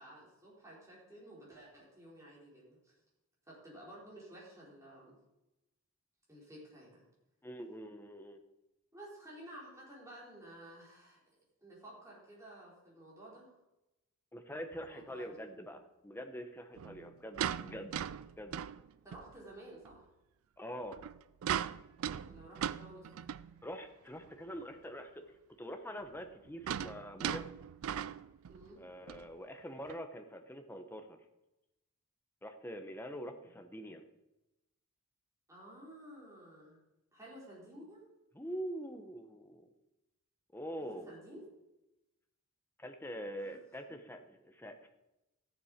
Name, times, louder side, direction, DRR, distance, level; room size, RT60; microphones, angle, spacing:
voice 1, 0.0-2.9 3.5-5.2 6.3-7.0 8.9-11.2 11.6-13.5 14.8-15.4 19.0-20.0 22.2-23.1 28.5-28.9 33.4-33.6 35.5-36.8 37.1-38.0 41.1-41.4 43.4-43.6, right 1 dB, 15° right, -6 dB, 4.4 m, -53 dB
voice 2, 7.4-8.4 14.3-17.9 18.4-18.6 20.6-21.0 23.6-25.3 25.6-27.5 28.8-31.2 32.4-34.0 38.3-39.7 40.5-41.2 42.8-44.9, equal, 10° left, 5 dB, 0.9 m, -44 dB
sound 1, 14.7-14.9 16.8-19.4 19.8-20.0 20.8-23.6 24.2-24.3 24.5-24.6 26.0-28.7 29.1-29.3 29.9-30.0, right 9 dB, 65° right, 0.4 m, -39 dB
14.0 x 7.2 x 5.1 m, 0.96 s
head